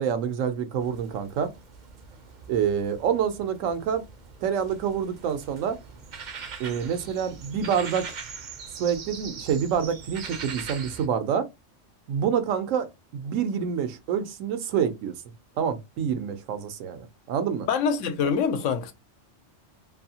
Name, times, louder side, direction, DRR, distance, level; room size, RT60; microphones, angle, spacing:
voice 1, 0.0-1.5 2.5-4.0 4.4-5.8 6.6-8.1 8.8-11.5 12.1-15.1 15.6-17.7, right 7 dB, 85° right, 1.0 m, -27 dB
sound 1, 0.8-11.1, right 5 dB, 55° right, 0.5 m, -42 dB
voice 2, 17.7-18.9, left 6 dB, 80° left, 0.9 m, -25 dB
2.7 x 2.6 x 2.7 m
omnidirectional pair, 1.3 m